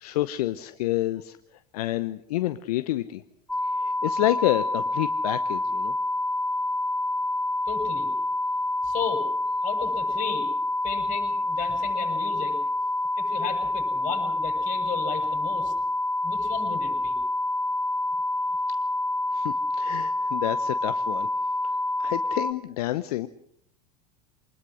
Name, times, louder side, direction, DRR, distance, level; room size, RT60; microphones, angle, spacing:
voice 1, 0.0-1.4 1.7-3.2 3.7-5.9 19.3-21.3 22.0-23.3, left 15 dB, 70° left, 12 dB, 0.9 m, -28 dB
sound 1, 3.5-22.5, left 1 dB, 5° left, 1.3 m, -27 dB
voice 2, 7.7-8.1 8.8-9.3 9.6-10.5 10.8-12.6 13.2-15.7 16.2-17.2, left 8 dB, 40° left, 4 dB, 7.5 m, -35 dB
25.5 x 20.5 x 6.4 m, 0.68 s
hypercardioid pair, 85°, 20 cm